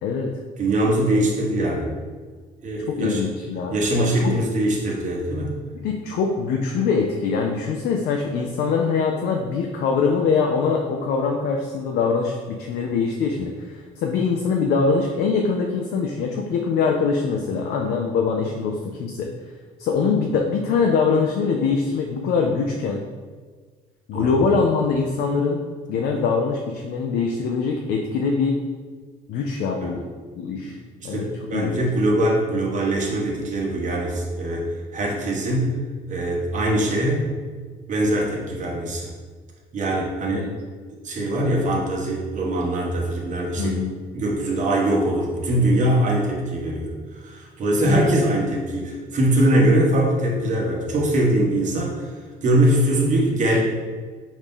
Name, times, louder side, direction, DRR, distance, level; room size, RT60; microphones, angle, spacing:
voice 1, 0.0-0.3 1.0-1.2 2.9-4.4 5.8-19.3 19.8-23.0 24.1-25.6 25.9-28.6 29.3-30.0 30.4-30.8 31.0-31.3 31.5-31.8 40.2-40.5 43.6-44.0 47.8-48.1, left 5 dB, 70° left, 2 dB, 0.5 m, -23 dB
voice 2, 0.6-1.9 2.6-3.2 3.7-5.5 24.1-24.3 29.8-29.9 30.6-30.7 31.0-34.7 34.9-35.7 36.1-37.2 37.9-39.1 39.7-40.5 41.0-43.8 44.1-46.9 47.2-52.1 52.4-53.6, right 1 dB, 45° right, -2 dB, 1.1 m, -22 dB
4.9 x 2.7 x 3.6 m, 1.5 s
cardioid pair, 110°, 17 cm